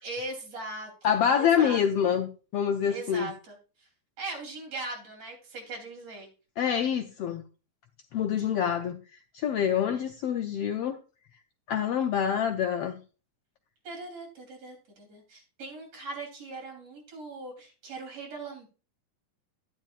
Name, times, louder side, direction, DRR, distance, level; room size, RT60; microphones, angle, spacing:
voice 1, 0.0-1.8 2.9-3.6 4.2-6.3 13.8-18.7, right 2 dB, 55° right, 4.4 m, -40 dB
voice 2, 1.0-3.3 6.6-7.4 8.1-9.0 9.3-11.0 11.7-13.0, left 8 dB, 90° left, 1.3 m, -26 dB
12.0 x 10.5 x 2.4 m
omnidirectional pair, 3.5 m